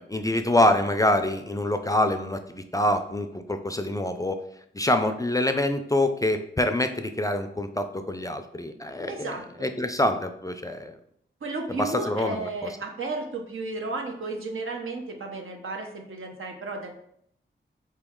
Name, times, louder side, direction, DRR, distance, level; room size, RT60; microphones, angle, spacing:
voice 1, 0.0-4.4 4.7-9.3 9.6-10.9 11.7-12.5, left 1 dB, 15° left, 8 dB, 0.3 m, -25 dB
voice 2, 9.1-9.7 11.4-16.9, right 3 dB, 80° right, 2 dB, 0.8 m, -33 dB
4.3 x 3.0 x 3.6 m, 0.69 s
wide cardioid pair, 70°, 21 cm